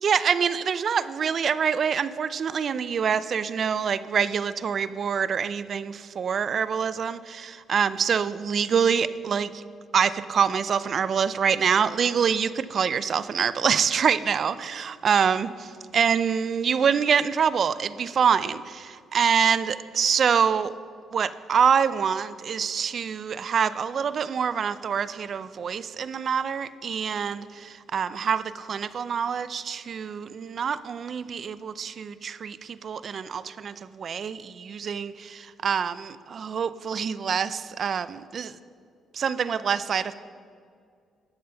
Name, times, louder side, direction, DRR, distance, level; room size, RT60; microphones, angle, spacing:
voice 1, 0.0-9.6 9.9-15.5 15.9-20.7 21.1-38.5 39.1-40.1, right 7 dB, 55° right, 15 dB, 0.5 m, -25 dB
11.5 x 7.5 x 6.9 m, 2.2 s
cardioid pair, 90°, 0 cm